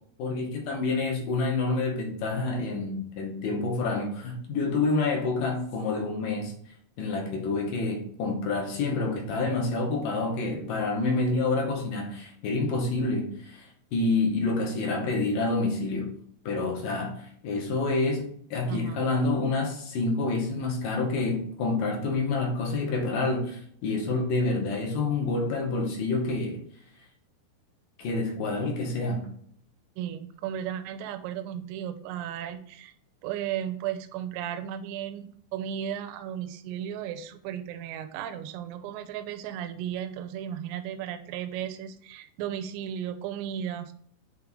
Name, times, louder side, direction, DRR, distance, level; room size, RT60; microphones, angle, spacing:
voice 1, 0.2-6.5 7.0-16.1 16.5-18.3 18.5-26.6 28.0-29.3, left 3 dB, 65° left, 1 dB, 2.3 m, -28 dB
voice 2, 18.7-19.0 30.0-32.9 33.2-43.9, right 10 dB, 85° right, 9 dB, 2.7 m, -35 dB
8.2 x 3.3 x 3.6 m, 0.62 s
omnidirectional pair, 5.1 m